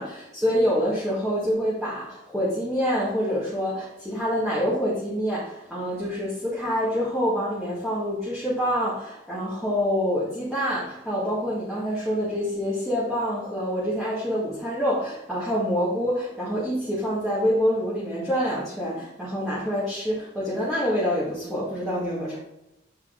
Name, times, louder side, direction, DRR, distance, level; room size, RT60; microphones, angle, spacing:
voice 1, 0.0-22.4, equal, ahead, -9 dB, 2.0 m, -26 dB
8.4 x 4.6 x 3.9 m, 0.91 s
head